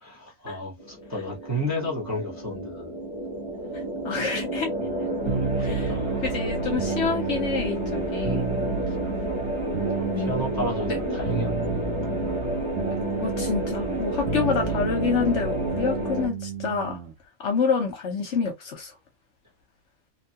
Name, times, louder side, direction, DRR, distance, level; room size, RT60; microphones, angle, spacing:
voice 1, 0.0-2.9 4.9-6.3 9.9-12.0, equal, 15° right, 0.9 m, -33 dB
sound 1, 0.8-16.3, right 1 dB, 25° left, 0.8 m, -30 dB
voice 2, 4.0-4.7 5.6-5.9 6.2-8.4 10.1-10.3 10.9-11.2 13.2-17.0 17.4-18.9, left 5 dB, 60° left, 1.0 m, -27 dB
sound 2, 5.3-17.1, right 5 dB, 75° right, 1.1 m, -32 dB
2.9 x 2.2 x 2.7 m
omnidirectional pair, 1.5 m